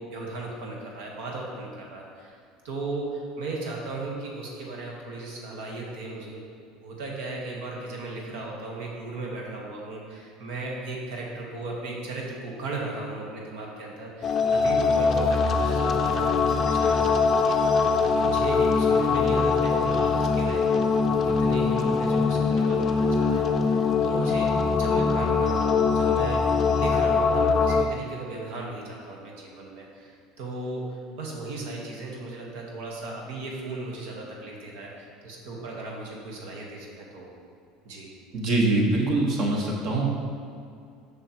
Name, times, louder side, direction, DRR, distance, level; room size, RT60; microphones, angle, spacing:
voice 1, 0.0-2.4 2.6-6.4 6.8-21.0 21.2-37.3 37.8-38.1, right 2 dB, 75° right, -2 dB, 1.2 m, -36 dB
sound 1, 14.2-27.8, left 4 dB, 35° left, 0.4 m, -22 dB
voice 2, 38.3-40.1, right 2 dB, 50° right, -1 dB, 1.3 m, -23 dB
7.0 x 5.6 x 3.0 m, 2.4 s
supercardioid pair, 110°, 0 cm